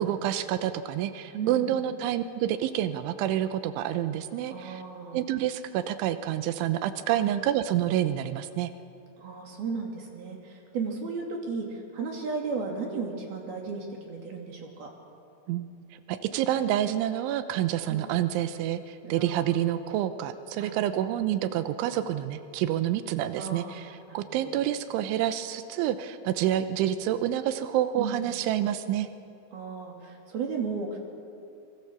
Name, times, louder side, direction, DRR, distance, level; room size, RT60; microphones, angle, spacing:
voice 1, 0.0-4.8 5.1-8.7 15.5-15.7 16.1-29.1, right 11 dB, 90° right, 11 dB, 3.3 m, -28 dB
voice 2, 1.3-1.8 4.5-5.2 7.2-7.3 9.2-14.9 17.8-18.0 19.0-19.6 20.6-20.8 23.4-23.7 24.1-24.6 28.0-28.3 29.5-31.0, right 4 dB, 55° right, 1 dB, 4.3 m, -35 dB
26.0 x 24.5 x 7.2 m, 2.5 s
omnidirectional pair, 5.4 m